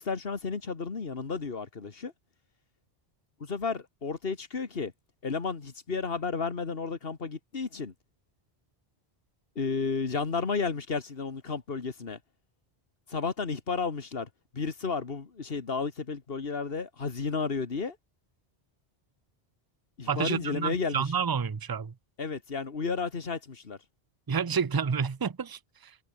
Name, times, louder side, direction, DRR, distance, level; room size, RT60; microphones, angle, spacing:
voice 1, 0.0-2.1 3.4-4.9 5.2-7.9 9.6-12.2 13.1-18.0 20.0-21.1 22.2-23.8, left 4 dB, 65° left, 1.9 m, -32 dB
voice 2, 20.1-21.9 24.3-26.0, right 6 dB, 25° right, 0.5 m, -29 dB
omnidirectional pair, 1.1 m